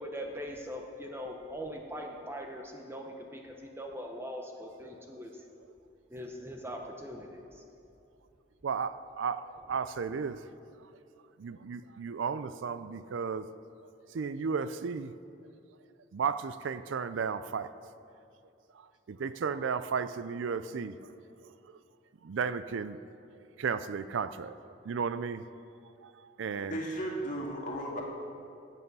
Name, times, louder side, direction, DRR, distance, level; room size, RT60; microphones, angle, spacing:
voice 1, 0.0-5.3 6.1-7.6 10.1-10.2, equal, 10° right, 2 dB, 0.8 m, -41 dB
voice 2, 8.6-10.4 11.4-13.4 14.1-15.1 16.1-17.7 19.1-21.0 22.2-23.0 23.6-24.5 24.9-25.4 26.0-26.1 26.4-26.8, right 6 dB, 75° right, 13 dB, 0.4 m, -34 dB
voice 3, 26.7-28.0, right 1 dB, 40° left, -1 dB, 2.0 m, -35 dB
14.0 x 8.4 x 5.4 m, 2.7 s
head